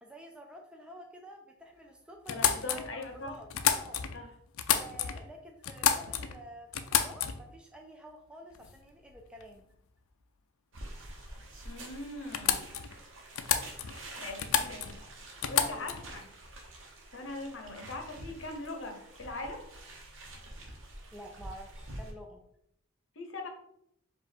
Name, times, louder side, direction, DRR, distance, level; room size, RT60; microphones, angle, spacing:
voice 1, 0.0-2.4 2.7-4.0 4.7-9.7 15.6-15.9 21.1-22.4, equal, 5° right, 1 dB, 0.4 m, -49 dB
sound 1, 2.3-4.2 4.5-5.3 5.6-6.4 6.7-7.6 8.6-8.7 9.1-9.5 11.5-11.6 11.8-11.9 12.3-13.0 13.4-14.1 14.4-15.0 15.4-16.1, left 8 dB, 80° left, 0.4 m, -30 dB
voice 2, 2.3-3.3 4.1-4.3 11.6-12.7 14.2-15.0 15.5-16.3 17.1-19.6 23.2-23.5, left 2 dB, 60° left, 4 dB, 0.8 m, -41 dB
sound 2, 10.7-22.1, right 1 dB, 65° right, 0.9 m, -47 dB
4.9 x 2.4 x 4.2 m, 0.72 s
head